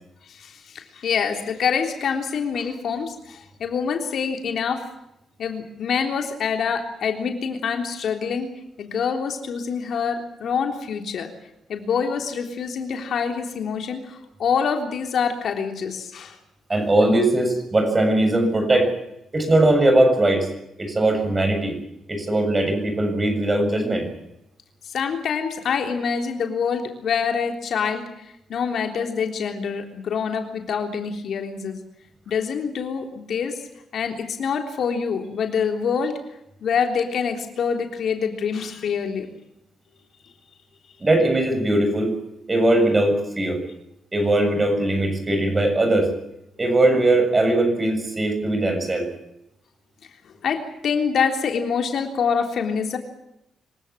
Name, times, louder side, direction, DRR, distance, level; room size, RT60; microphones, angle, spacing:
voice 1, 0.3-4.9 5.4-11.3 11.7-16.4 24.8-31.8 32.3-33.6 33.9-36.2 36.6-39.3 50.0-50.1 50.4-53.0, left 6 dB, 60° left, 4 dB, 3.5 m, -26 dB
voice 2, 16.7-18.9 19.3-20.5 20.8-21.8 22.1-24.1 41.0-42.2 42.5-43.6 44.1-46.1 46.6-49.1, right 1 dB, 20° right, 6 dB, 7.3 m, -20 dB
26.5 x 16.5 x 8.6 m, 0.83 s
cardioid pair, 135°, 0 cm